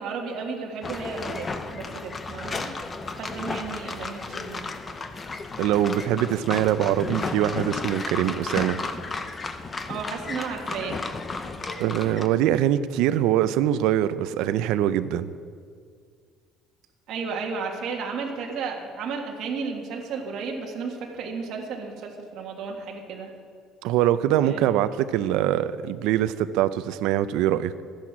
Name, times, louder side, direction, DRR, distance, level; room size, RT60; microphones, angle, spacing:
voice 1, 0.0-2.8 3.1-4.7 9.9-11.0 17.1-23.3 24.4-24.6, right 5 dB, 50° right, 0 dB, 1.8 m, -33 dB
sound 1, 0.8-12.3, left 3 dB, 20° left, 0.5 m, -33 dB
voice 2, 5.6-8.8 11.8-15.3 23.8-27.8, right 12 dB, 75° right, 13 dB, 0.5 m, -23 dB
13.0 x 10.5 x 6.1 m, 2.1 s
cardioid pair, 175°, 0 cm